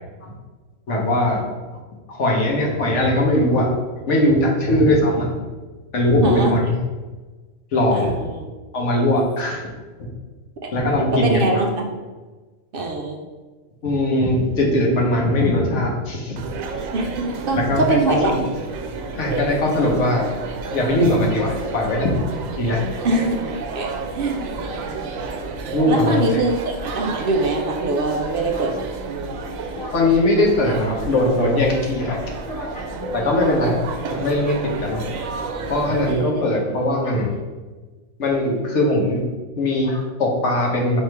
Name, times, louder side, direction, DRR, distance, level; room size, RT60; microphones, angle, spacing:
voice 1, 0.9-1.4 2.1-3.7 4.1-5.3 5.9-6.6 7.7-8.1 8.7-9.7 10.7-11.6 13.8-16.4 17.5-18.4 19.1-20.3 20.7-22.1 22.6-22.8 25.7-26.4 29.8-35.0 35.7-37.3 38.2-39.2 39.6-41.0, left 1 dB, 65° left, -1 dB, 1.2 m, -20 dB
voice 2, 6.2-6.6 7.9-8.5 10.6-10.7 11.1-11.9 12.7-13.2 16.9-18.3 19.3-19.5 23.0-23.4 23.7-24.6 25.9-28.9 33.4-33.9 36.1-36.4, right 2 dB, 65° right, 3 dB, 0.6 m, -23 dB
sound 1, 16.4-36.1, right 3 dB, 85° right, 1.0 m, -31 dB
3.6 x 3.2 x 4.5 m, 1.3 s
omnidirectional pair, 1.4 m